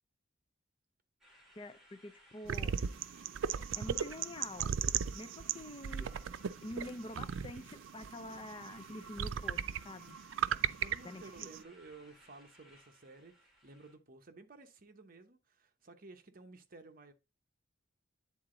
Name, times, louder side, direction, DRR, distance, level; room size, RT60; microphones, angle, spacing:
sound 1, 1.2-14.0, equal, ahead, 2.7 m, -62 dB
voice 1, 1.6-2.8 3.8-4.7 5.1-6.1 6.6-10.2 11.0-11.5, left 1 dB, 25° left, 0.5 m, -47 dB
sound 2, 2.5-11.6, right 8 dB, 85° right, 0.4 m, -37 dB
voice 2, 10.5-17.1, right 3 dB, 50° right, 0.9 m, -55 dB
9.5 x 3.8 x 3.8 m
head